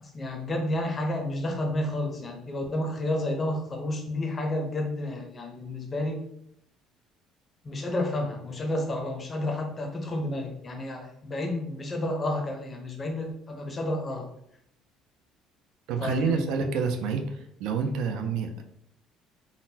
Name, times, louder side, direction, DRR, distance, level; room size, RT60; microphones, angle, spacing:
voice 1, 0.0-6.2 7.6-14.3 16.0-16.5, left 1 dB, 20° left, 2 dB, 0.6 m, -31 dB
voice 2, 15.9-18.6, right 5 dB, 70° right, 5 dB, 0.4 m, -28 dB
3.8 x 2.1 x 2.7 m, 0.75 s
cardioid pair, 165°, 0 cm